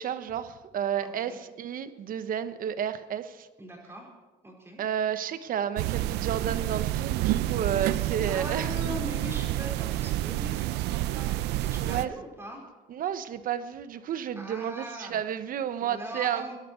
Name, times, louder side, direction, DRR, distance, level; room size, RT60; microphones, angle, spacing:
voice 1, 0.0-3.5 4.8-9.0 11.8-12.1 12.9-16.5, right 9 dB, 55° right, 12 dB, 1.1 m, -31 dB
voice 2, 1.0-1.4 3.6-4.1 4.4-4.8 8.2-12.6 14.4-15.2 15.8-16.6, equal, 15° right, -1 dB, 4.8 m, -40 dB
sound 1, 5.8-12.1, right 15 dB, 85° right, 0.6 m, -29 dB
24.0 x 11.0 x 4.6 m, 1.2 s
cardioid pair, 110°, 17 cm